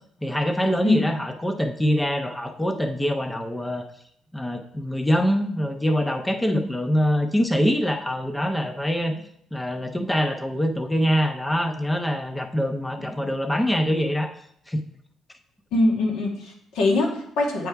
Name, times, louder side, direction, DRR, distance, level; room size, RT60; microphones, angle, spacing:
voice 1, 0.2-3.8 4.3-9.2 9.5-14.3 14.7-14.8, equal, 10° left, 6 dB, 0.5 m, -24 dB
voice 2, 15.7-17.7, left 2 dB, 90° left, 0 dB, 1.5 m, -23 dB
8.1 x 3.4 x 4.5 m, 0.69 s
cardioid pair, 110°, 0 cm